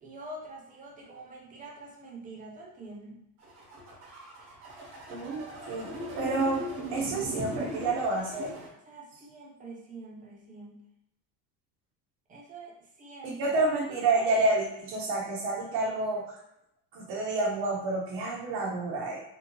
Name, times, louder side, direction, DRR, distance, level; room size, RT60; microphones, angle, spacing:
voice 1, 0.0-3.2 8.9-10.8 12.3-13.5, right 2 dB, 20° right, -2 dB, 0.3 m, -45 dB
sound 1, 3.4-8.7, right 1 dB, 40° right, 1.3 m, -38 dB
voice 2, 5.1-5.9 6.2-6.6 6.9-8.5 13.2-16.4 16.9-19.2, right 2 dB, 65° right, -4 dB, 0.8 m, -29 dB
3.4 x 2.8 x 2.9 m, 0.80 s
cardioid pair, 175°, 42 cm